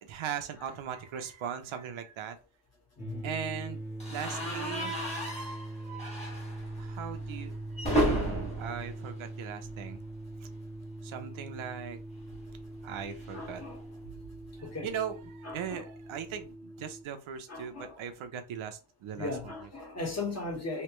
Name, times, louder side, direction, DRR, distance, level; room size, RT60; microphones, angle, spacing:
voice 1, 0.0-2.4 3.2-3.8 4.1-5.0 6.8-7.6 7.9-10.0 11.0-12.0 12.8-13.6 14.6-19.3, right 8 dB, 75° right, 0.8 m, -39 dB
voice 2, 3.0-3.3 11.4-11.5 13.3-13.8 14.6-14.9 15.4-15.9 17.5-18.0 19.2-20.8, left 3 dB, 30° left, 1.5 m, -38 dB
sound 1, 3.0-17.0, right 2 dB, 5° right, 1.0 m, -42 dB
sound 2, 4.0-10.0 10.3-10.5 10.8-10.9 12.1-14.5, right 1 dB, 15° left, 1.6 m, -35 dB
3.3 x 2.9 x 3.0 m
wide cardioid pair, 145°, 49 cm